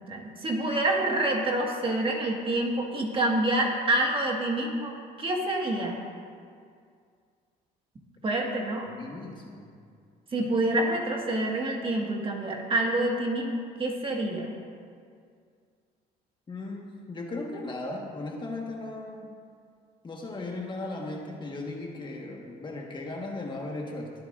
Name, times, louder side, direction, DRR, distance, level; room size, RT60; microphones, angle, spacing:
voice 1, 0.1-4.9 5.2-6.0 8.2-8.9 10.3-14.5, right 1 dB, 30° right, 0 dB, 1.8 m, -27 dB
voice 2, 8.9-9.7 16.5-19.3 20.0-24.1, left 2 dB, 30° left, 0 dB, 1.5 m, -37 dB
22.5 x 9.3 x 2.6 m, 2.2 s
cardioid pair, 110°, 17 cm